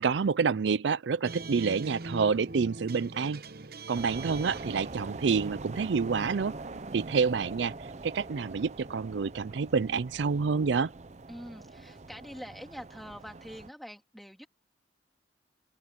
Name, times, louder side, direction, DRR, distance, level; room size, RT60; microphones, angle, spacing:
voice 1, 0.0-3.4 3.9-6.6 6.9-7.7 8.0-10.9, right 5 dB, 75° right, 0.5 m, -28 dB
sound 1, 1.2-8.6, right 3 dB, 55° right, 1.0 m, -44 dB
sound 2, 3.9-13.7, right 3 dB, 40° right, 0.7 m, -43 dB
voice 2, 11.3-14.5, equal, ahead, 3.0 m, -45 dB
open air
head